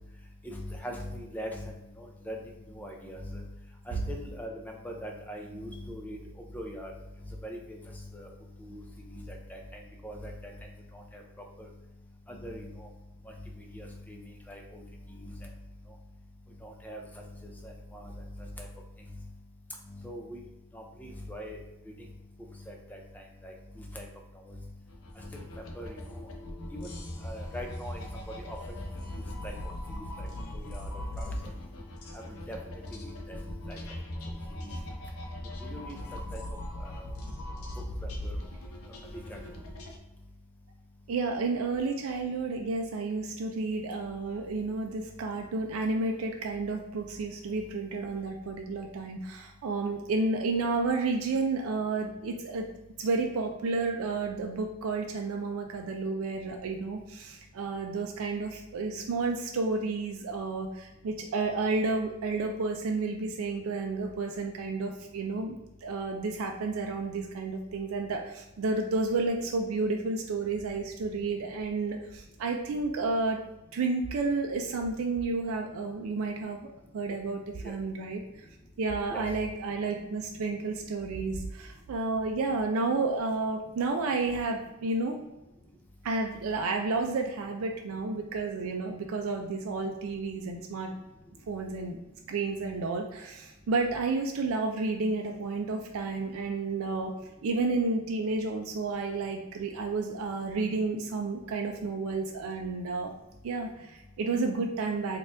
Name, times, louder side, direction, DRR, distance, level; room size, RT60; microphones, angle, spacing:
voice 1, 0.4-1.7 2.0-2.4 2.7-3.4 3.9-4.5 4.8-6.2 6.5-6.9 7.4-7.6 8.1-8.3 8.6-8.8 9.1-9.2 9.5-9.6 10.0-10.5 11.1-11.2 12.3-12.9 13.7-14.2 14.5-14.8 15.3-15.4 16.6-17.0 17.6-18.2 18.6-18.7 20.0-20.4 20.7-21.6 22.7-23.0 23.4-23.5 23.9-24.1 24.5-24.6 25.3-25.4 25.8-26.2 26.8-26.9 27.2-28.0 28.5-28.6 29.4-29.5 29.9-30.3 30.5-30.9 31.2-31.4 32.5-32.6 32.9-33.4 33.7-33.8 34.6-34.7 35.6-36.0 36.3-36.4 36.8-37.0 38.2-38.3 39.3-39.4 77.6-77.7 79.1-79.2, equal, 10° left, 1 dB, 0.4 m, -41 dB
sound 1, 24.9-40.0, left 1 dB, 85° left, 0.6 m, -39 dB
voice 2, 41.1-52.7 53.0-73.4 73.7-78.2 78.8-85.2 86.0-90.9 91.5-92.0 92.3-97.1 97.4-103.1 103.4-105.2, right 3 dB, 75° right, 3 dB, 0.4 m, -31 dB
4.2 x 2.3 x 2.5 m, 0.98 s
head